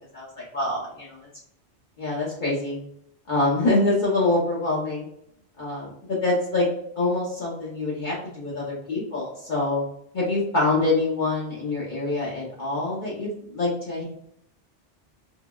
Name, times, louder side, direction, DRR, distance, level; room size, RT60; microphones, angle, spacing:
voice 1, 0.1-1.3 2.0-2.8 3.3-5.1 5.6-6.7 7.0-9.8 10.1-14.0, left 2 dB, 50° left, -6 dB, 0.9 m, -25 dB
3.6 x 2.1 x 2.2 m, 0.73 s
omnidirectional pair, 1.2 m